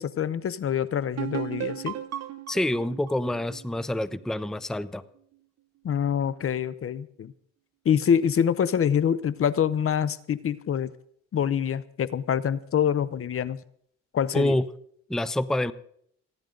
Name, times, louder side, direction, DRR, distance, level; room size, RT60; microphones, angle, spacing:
voice 1, 0.0-2.0 5.8-7.3 7.8-10.9 11.3-13.6 14.1-14.6, left 8 dB, 45° left, 18 dB, 0.8 m, -25 dB
sound 1, 1.2-4.8, right 13 dB, 60° right, 1.0 m, -36 dB
voice 2, 2.5-5.0 14.3-14.6 15.1-15.7, left 1 dB, ahead, 16 dB, 0.6 m, -27 dB
29.5 x 10.5 x 3.9 m, 0.66 s
cardioid pair, 90°, 30 cm